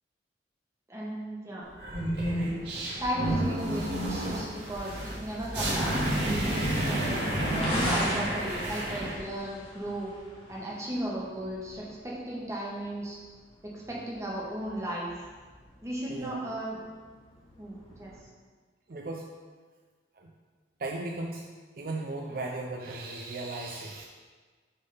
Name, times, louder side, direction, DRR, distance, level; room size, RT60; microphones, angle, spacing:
voice 1, 0.9-1.7 3.0-7.2 7.5-10.1 10.5-13.2 13.6-15.3 15.8-16.8 17.6-18.1, right 1 dB, 15° right, -5 dB, 1.2 m, -35 dB
sound 1, 1.8-9.2, right 1 dB, 70° right, 2.1 m, -30 dB
sound 2, 4.2-18.2, left 1 dB, 30° left, 1.2 m, -42 dB
voice 2, 16.1-16.5 18.9-19.3 20.1-20.3 20.8-21.5 21.8-24.0, right 2 dB, 50° right, 0 dB, 0.5 m, -36 dB
6.5 x 3.7 x 5.5 m, 1.5 s
head